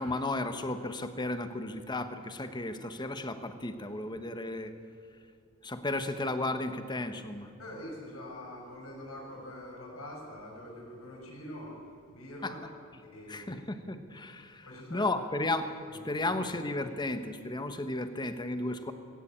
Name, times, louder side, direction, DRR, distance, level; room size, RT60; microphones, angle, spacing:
voice 1, 0.0-4.7 5.6-7.5 12.4-12.5 13.3-15.7 16.0-18.9, left 2 dB, 20° left, 9 dB, 1.3 m, -34 dB
voice 2, 7.6-12.6 13.0-13.6 14.6-15.1 15.9-16.4, left 1 dB, 85° left, -2 dB, 7.0 m, -45 dB
19.5 x 17.0 x 8.8 m, 2.4 s
head